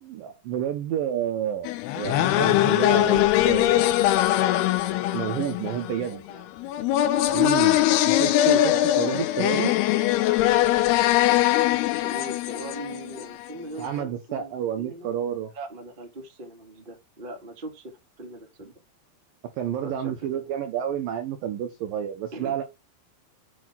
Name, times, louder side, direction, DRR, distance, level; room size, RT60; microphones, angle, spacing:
voice 1, 0.0-4.1 5.1-6.2 7.3-9.7 13.8-15.5 19.6-22.6, right 10 dB, 80° right, 2.0 m, -30 dB
sound 1, 1.7-13.5, left 14 dB, 80° left, 2.4 m, -22 dB
voice 2, 6.1-6.5 7.4-7.9 12.0-15.2 15.5-17.9 18.2-18.7 19.8-20.5 22.3-22.6, right 1 dB, 30° right, 1.0 m, -41 dB
8.5 x 3.6 x 6.0 m
omnidirectional pair, 5.3 m